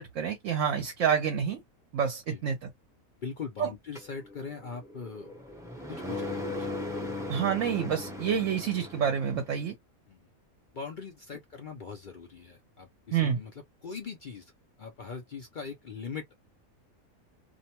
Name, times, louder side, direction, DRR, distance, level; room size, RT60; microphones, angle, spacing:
voice 1, 0.0-1.6 1.9-2.7 3.6-3.7 7.3-9.7 13.1-13.4, right 8 dB, 65° right, 1.0 m, -28 dB
voice 2, 3.2-5.4 5.9-6.8 10.1-10.2 10.7-13.5 13.8-14.5 14.8-16.3, left 5 dB, 60° left, 0.5 m, -41 dB
sound 1, 4.0-9.5, left 2 dB, 5° right, 0.5 m, -38 dB
2.6 x 2.1 x 2.8 m
omnidirectional pair, 1.5 m